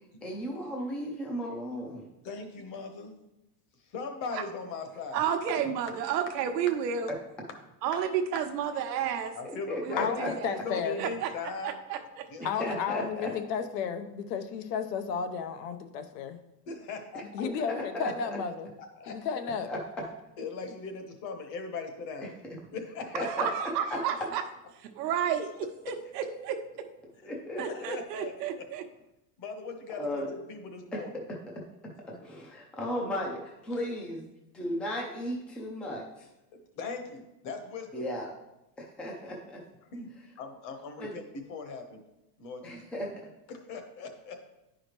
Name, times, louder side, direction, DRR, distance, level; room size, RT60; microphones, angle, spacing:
voice 1, 0.2-2.0 9.7-10.3 12.4-13.3 17.7-18.1 19.7-19.8 23.1-23.5 23.9-24.1 27.2-27.6 30.0-30.3 30.9-31.0 32.2-34.3 34.5-36.3 37.9-38.3 38.8-39.6 41.0-41.1 42.6-43.1, equal, ahead, -1 dB, 0.4 m, -35 dB
voice 2, 2.2-3.2 3.8-5.3 9.3-11.7 12.3-12.4 13.3-13.4 16.7-17.2 19.0-19.1 20.4-22.3 22.7-23.3 26.2-26.3 27.6-28.6 29.4-30.2 30.5-31.1 32.1-32.3 36.5-38.1 39.8-40.1 40.4-42.0 42.4-43.1 43.5-44.4, left 4 dB, 40° left, 6 dB, 1.1 m, -39 dB
voice 3, 5.1-7.1 7.8-9.3 9.8-10.6 11.0-11.3 11.6-12.0 23.2-24.4 24.9-25.5 25.9-26.5 27.6-28.8, right 8 dB, 85° right, 6 dB, 1.0 m, -31 dB
voice 4, 10.0-11.0 12.4-16.4 17.3-18.7 19.1-19.7, left 6 dB, 90° left, 8 dB, 0.9 m, -33 dB
10.0 x 5.0 x 3.0 m, 0.91 s
supercardioid pair, 150°, 47 cm